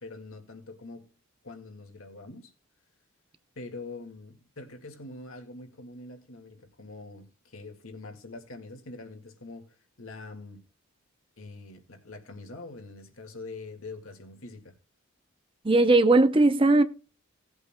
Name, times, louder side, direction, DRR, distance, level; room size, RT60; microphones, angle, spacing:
voice 1, 0.0-1.1 1.4-2.5 3.6-10.6 11.4-14.7, left 3 dB, 70° left, 2.0 m, -44 dB
voice 2, 15.6-16.8, right 2 dB, 25° right, 0.6 m, -19 dB
18.5 x 8.2 x 2.2 m
head